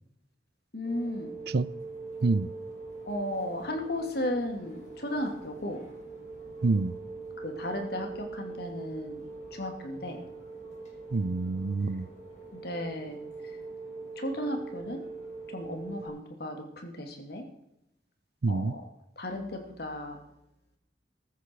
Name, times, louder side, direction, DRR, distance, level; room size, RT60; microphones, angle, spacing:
voice 1, 0.7-1.3 3.1-5.8 7.4-10.2 12.5-13.2 14.2-15.0 15.5-17.4 18.5-18.8 19.2-20.2, left 1 dB, 65° left, 4 dB, 2.9 m, -35 dB
sound 1, 0.8-16.1, right 3 dB, 40° left, 5.3 m, -43 dB
voice 2, 6.6-7.0 11.1-12.1 18.4-18.7, right 3 dB, 65° right, 18 dB, 0.5 m, -27 dB
15.0 x 13.5 x 4.8 m, 0.82 s
head